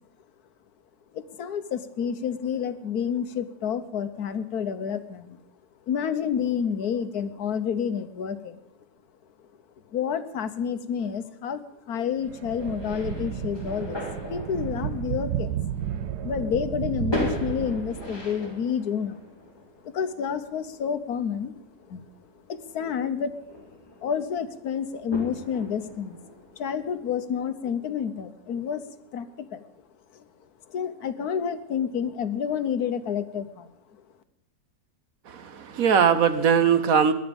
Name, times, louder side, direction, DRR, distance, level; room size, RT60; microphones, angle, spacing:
voice 1, 1.1-5.4 5.9-8.6 9.9-14.0 14.3-15.5 16.2-19.2 19.8-21.6 21.9-22.0 22.5-23.3 24.0-26.2 26.6-28.8 29.1-29.6 30.7-33.7, left 7 dB, 75° left, 11 dB, 1.4 m, -29 dB
sound 1, 12.2-18.4, right 10 dB, 85° right, 1.3 m, -32 dB
sound 2, 12.6-27.2, left 1 dB, 15° left, 3.9 m, -39 dB
voice 2, 35.3-37.1, right 7 dB, 65° right, 11 dB, 1.3 m, -20 dB
18.5 x 11.5 x 5.3 m, 0.86 s
omnidirectional pair, 1.7 m